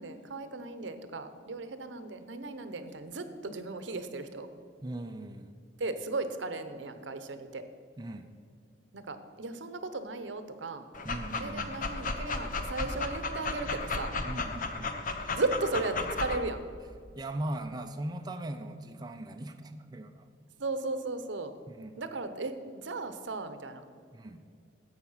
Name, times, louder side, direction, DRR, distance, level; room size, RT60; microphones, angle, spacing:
voice 1, 0.0-4.5 5.8-7.7 8.9-10.8 11.4-14.1 15.3-16.6 20.6-21.5 22.0-23.8, right 3 dB, 75° right, 10 dB, 0.8 m, -36 dB
voice 2, 4.8-5.5 8.0-8.3 11.0-11.7 14.2-15.0 17.2-20.3 21.7-22.0 24.1-24.4, right 1 dB, 20° right, 5 dB, 0.5 m, -39 dB
Dog, 10.9-16.4, left 3 dB, 45° left, 0.8 m, -34 dB
11.5 x 8.1 x 5.6 m, 2.2 s
head